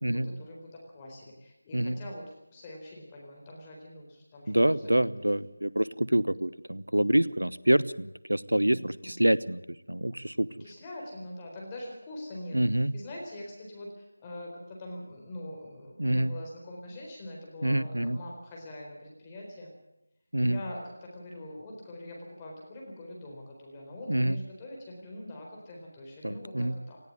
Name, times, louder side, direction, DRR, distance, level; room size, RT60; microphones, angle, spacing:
voice 1, 0.0-4.6 4.9-5.0 8.6-9.3 10.6-12.6 12.9-19.7 20.4-27.0, left 1 dB, 15° left, -1 dB, 4.2 m, -43 dB
voice 2, 4.5-9.6 9.9-10.5 12.5-12.9 16.0-16.3 17.6-18.2 20.3-20.6 24.1-24.4 26.2-26.8, right 1 dB, 90° right, 16 dB, 1.0 m, -26 dB
19.0 x 15.5 x 9.6 m, 0.88 s
figure-of-eight pair, 165°, 0 cm